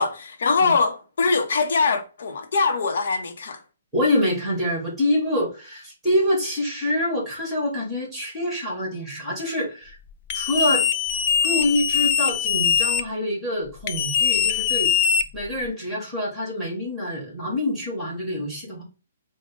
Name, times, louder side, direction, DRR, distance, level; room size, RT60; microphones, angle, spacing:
voice 1, 0.0-3.6, left 4 dB, 70° left, 0.7 m, -22 dB
voice 2, 3.9-10.0 10.3-10.9 11.4-14.9 15.3-18.8, left 1 dB, 5° right, 2.0 m, -26 dB
sound 1, 10.3-13.0 13.9-15.7, left 8 dB, 35° left, 0.4 m, -22 dB
5.0 x 2.1 x 3.6 m
hypercardioid pair, 155°, 0 cm